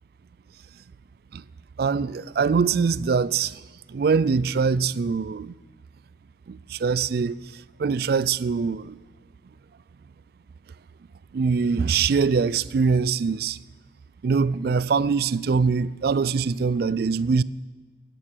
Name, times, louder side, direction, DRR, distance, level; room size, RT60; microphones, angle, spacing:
voice 1, 1.8-3.6 3.9-5.5 6.5-7.4 7.8-8.9 11.3-13.6 14.2-17.4, right 5 dB, 55° right, 0.3 m, -23 dB
12.0 x 11.5 x 6.5 m
head